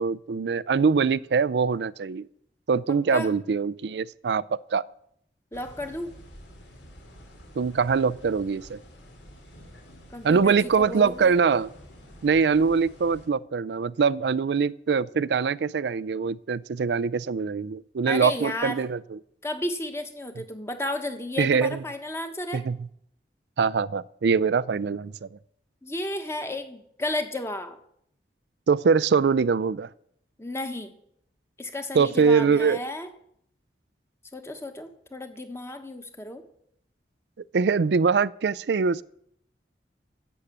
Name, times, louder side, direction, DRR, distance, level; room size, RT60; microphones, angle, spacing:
voice 1, 0.0-2.2 2.7-4.4 4.7-4.8 7.6-8.8 10.2-11.7 12.2-19.2 21.4-21.8 22.5-22.8 23.6-25.1 28.7-29.9 31.9-32.9 37.5-39.0, right 5 dB, 70° right, 0.4 m, -23 dB
sound 1, 5.5-13.3, equal, 80° left, 2.9 m, -49 dB
voice 2, 5.5-6.1 10.1-11.3 18.1-18.9 19.4-22.6 25.8-27.8 30.4-30.9 31.6-33.1 34.3-36.4, left 1 dB, 15° left, 1.2 m, -33 dB
11.5 x 8.0 x 7.3 m
head